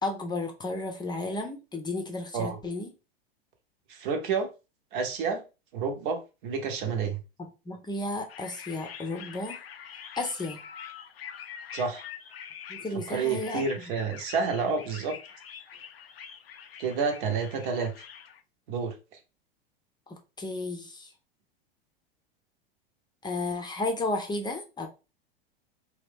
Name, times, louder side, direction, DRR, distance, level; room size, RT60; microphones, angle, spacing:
voice 1, 0.0-2.9 7.4-9.6 10.2-10.6 12.7-13.6 20.4-21.1 23.2-24.9, left 2 dB, 15° left, 0.7 m, -33 dB
voice 2, 3.9-4.5 4.9-5.4 5.7-7.2 11.7-12.0 13.1-15.2 16.8-17.9 18.7-18.9, right 5 dB, 60° right, 1.0 m, -29 dB
sound 1, 8.3-18.4, left 8 dB, 90° left, 0.5 m, -45 dB
2.9 x 2.3 x 3.4 m
hypercardioid pair, 100°, 29 cm